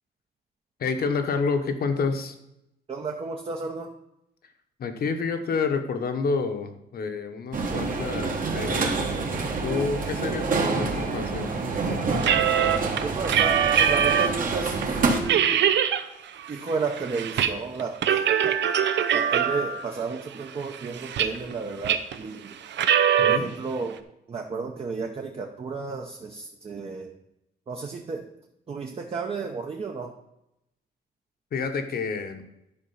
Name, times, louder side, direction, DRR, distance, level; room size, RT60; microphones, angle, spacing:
voice 1, 0.8-2.3 4.8-9.3 9.6-11.5 23.2-23.5 31.5-32.4, left 4 dB, 60° left, 7 dB, 1.1 m, -29 dB
voice 2, 2.9-3.9 7.7-7.9 13.0-15.7 16.5-18.6 19.1-22.6 23.2-24.0 24.3-27.1 27.7-28.3 28.7-30.1, right 4 dB, 35° right, 2 dB, 0.8 m, -33 dB
sound 1, 7.5-15.2, right 4 dB, 50° right, 1.4 m, -27 dB
sound 2, 12.2-14.4 14.8-14.9 15.2-16.0 16.4-17.5 17.8-19.8 20.4-21.5 21.8-22.2 22.7-23.4, right 9 dB, 85° right, 0.7 m, -22 dB
11.5 x 5.1 x 5.7 m, 0.83 s
wide cardioid pair, 165°, 18 cm